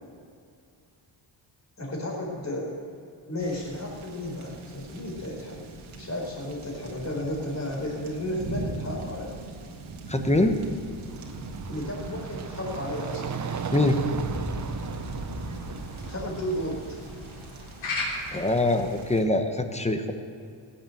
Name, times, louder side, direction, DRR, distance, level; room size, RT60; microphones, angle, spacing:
voice 1, 1.8-2.7 3.3-9.3 11.7-13.4 16.0-17.0, left 1 dB, 35° left, -3 dB, 4.5 m, -33 dB
sound 1, 3.4-19.2, right 2 dB, 90° right, 1.9 m, -40 dB
voice 2, 10.1-10.6 13.7-14.0 18.3-20.1, left 2 dB, 15° left, 6 dB, 1.1 m, -23 dB
sound 2, 10.8-16.8, right 6 dB, 40° right, 0.7 m, -36 dB
sound 3, 12.5-18.8, left 2 dB, 90° left, 3.4 m, -40 dB
17.0 x 7.6 x 7.9 m, 2.4 s
wide cardioid pair, 110°, 47 cm